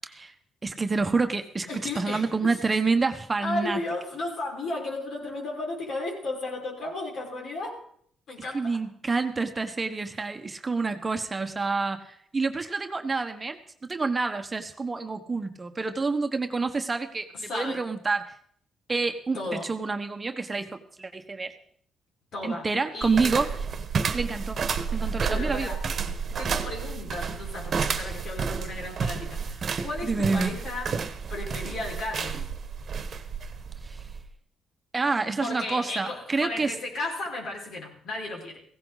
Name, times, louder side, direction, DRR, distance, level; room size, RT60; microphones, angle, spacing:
voice 1, 0.6-1.7 1.9-3.8 8.5-13.6 13.9-18.3 18.9-21.5 22.4-23.7 24.1-24.6 24.9-25.7 27.9-28.1 30.0-30.5 33.8-34.0 34.9-36.7, right 4 dB, 25° right, 6 dB, 1.2 m, -28 dB
voice 2, 1.7-2.6 3.4-7.8 8.3-8.8 17.3-17.8 19.3-19.7 22.3-22.7 22.9-23.3 25.2-25.8 26.4-30.9 31.3-32.5 35.4-38.6, left 2 dB, 60° left, 0 dB, 5.3 m, -34 dB
sound 1, 23.0-34.3, right 6 dB, 50° right, 1.3 m, -31 dB
16.5 x 16.0 x 4.1 m, 0.63 s
cardioid pair, 90°, 0 cm